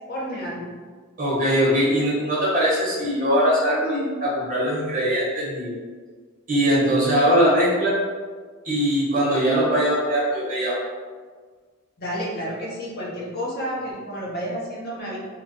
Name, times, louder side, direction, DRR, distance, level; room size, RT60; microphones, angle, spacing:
voice 1, 0.1-0.7 3.7-3.8 9.5-9.6 12.0-15.2, equal, 45° left, -4 dB, 0.8 m, -30 dB
voice 2, 1.2-5.7 6.5-7.9 8.6-10.8, equal, 35° right, -7 dB, 1.0 m, -21 dB
2.9 x 2.3 x 3.9 m, 1.5 s
head